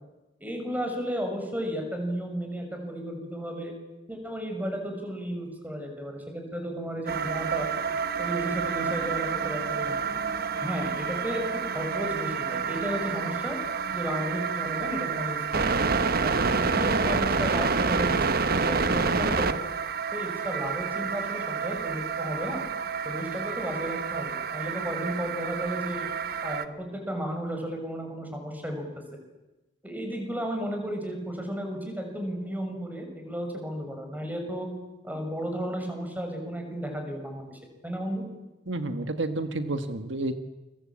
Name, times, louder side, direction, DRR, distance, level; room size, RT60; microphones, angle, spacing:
voice 1, 0.4-3.7 4.1-7.7 8.2-10.0 10.6-13.6 13.9-15.7 16.2-19.6 20.1-22.6 23.0-26.1 26.4-28.8 29.8-34.7 35.0-38.2, equal, 10° right, 4 dB, 6.6 m, -33 dB
sound 1, 7.1-26.6, right 5 dB, 55° right, 1.2 m, -28 dB
voice 2, 38.7-40.3, right 2 dB, 75° right, 8 dB, 1.6 m, -30 dB
29.0 x 23.0 x 8.8 m, 1.0 s
head